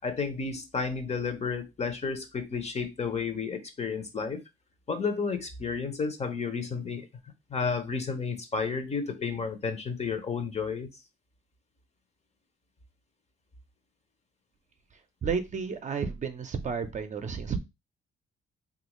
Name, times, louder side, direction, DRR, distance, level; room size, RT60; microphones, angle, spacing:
voice 1, 0.0-4.4 4.9-7.1 7.5-10.9, left 5 dB, 35° left, 0.7 m, -32 dB
voice 2, 15.2-17.6, right 6 dB, 40° right, 0.5 m, -31 dB
3.4 x 2.4 x 3.0 m
cardioid pair, 90°, 20 cm